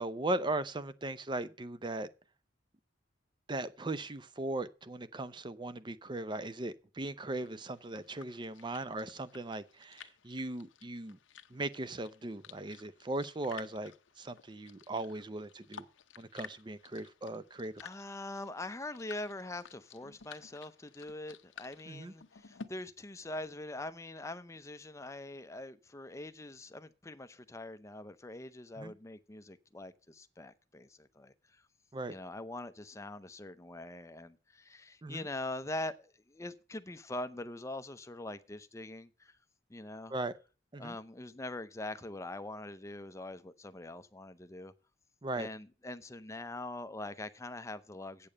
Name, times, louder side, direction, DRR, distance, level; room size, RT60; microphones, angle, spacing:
voice 1, 0.0-2.1 3.5-11.2 11.5-13.9 14.2-15.9 16.2-17.7 21.9-22.1 28.8-28.9 31.9-32.1 35.0-35.2 40.1-40.3 40.7-41.0 45.2-45.5, right 2 dB, 25° right, 0.6 m, -38 dB
sound 1, 7.4-22.7, left 6 dB, 85° left, 0.7 m, -54 dB
voice 2, 17.8-31.6 32.1-39.3 39.7-40.1 40.8-44.7 45.3-48.3, left 2 dB, 15° left, 0.6 m, -43 dB
8.6 x 6.9 x 6.5 m
head